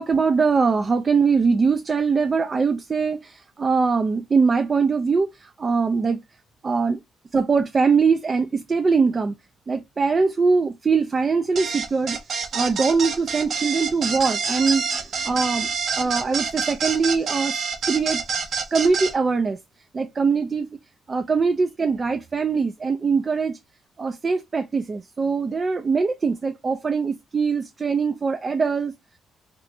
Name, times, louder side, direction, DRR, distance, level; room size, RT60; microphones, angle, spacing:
voice 1, 0.0-6.2 6.6-7.0 7.3-9.3 9.7-12.2 12.5-15.7 16.0-17.5 17.8-18.2 18.7-19.6 19.9-20.7 21.1-23.6 24.0-28.9, right 5 dB, 35° right, 0.4 m, -22 dB
sound 1, 11.6-19.1, right 5 dB, 60° right, 0.7 m, -27 dB
3.3 x 3.0 x 2.4 m
cardioid pair, 90°, 0 cm